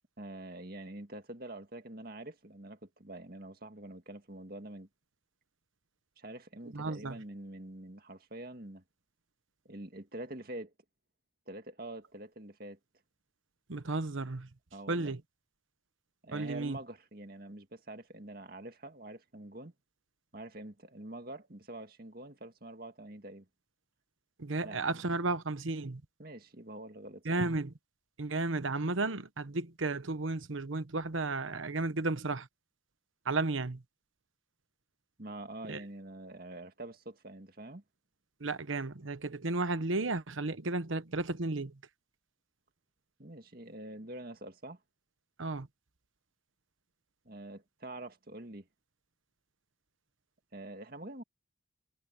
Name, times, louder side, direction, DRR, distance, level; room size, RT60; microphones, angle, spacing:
voice 1, 0.2-4.9 6.2-8.8 9.7-10.7 11.5-12.8 14.7-15.1 16.2-19.7 20.3-23.5 24.6-24.8 26.2-27.4 35.2-37.8 43.2-44.8 47.3-48.7 50.5-51.2, right 1 dB, 50° right, 2.1 m, -45 dB
voice 2, 6.7-7.2 13.7-14.5 14.9-15.2 16.3-16.8 24.4-26.0 27.2-27.7 28.2-32.5 33.2-33.8 35.7-35.8 38.4-41.7 45.4-45.7, right 3 dB, 90° right, 1.2 m, -33 dB
head